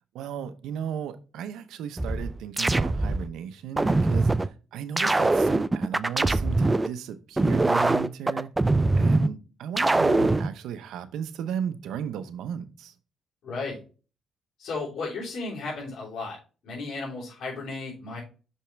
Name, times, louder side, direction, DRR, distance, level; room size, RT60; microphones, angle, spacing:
voice 1, 0.1-8.5 9.0-12.9, right 8 dB, 85° right, 0.7 m, -35 dB
sound 1, 2.0-3.3 3.8-4.5 5.0-6.9 7.4-9.3 9.8-10.5, right 2 dB, 15° right, 0.3 m, -22 dB
voice 2, 8.9-9.3 13.4-13.8 14.6-16.4 16.6-18.2, left 3 dB, 65° left, 3.6 m, -34 dB
6.1 x 5.5 x 3.4 m
cardioid pair, 90°, 0 cm